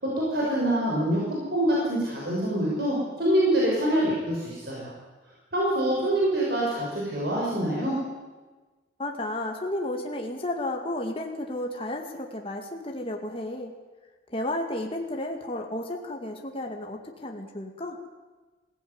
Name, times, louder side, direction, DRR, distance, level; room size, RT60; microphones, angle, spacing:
voice 1, 0.0-4.9 5.5-8.0, right 1 dB, 60° right, -4 dB, 6.2 m, -25 dB
voice 2, 9.0-13.7 14.3-18.0, left 1 dB, 30° left, 2 dB, 2.1 m, -32 dB
21.0 x 16.5 x 9.6 m, 1.3 s
head